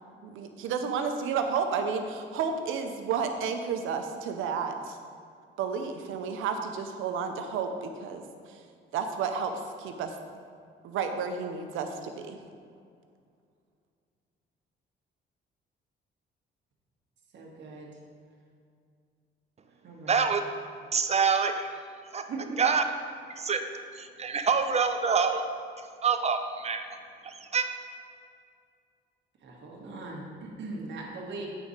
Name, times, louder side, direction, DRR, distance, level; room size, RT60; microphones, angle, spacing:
voice 1, 0.2-5.0 5.6-8.2 8.9-9.5 9.8-10.1 10.8-12.4, right 6 dB, 90° right, 6 dB, 0.7 m, -31 dB
voice 2, 17.3-17.9 19.8-20.3 22.3-22.6 29.4-31.5, right 3 dB, 65° right, -2 dB, 1.5 m, -40 dB
voice 3, 20.1-20.4 20.9-21.7 22.1-22.2 22.6-22.8 23.4-23.6 24.0-25.4 26.0-26.9 27.2-27.7, right 5 dB, 35° right, 7 dB, 0.6 m, -26 dB
8.4 x 4.1 x 5.0 m, 2.3 s
cardioid pair, 90°, 20 cm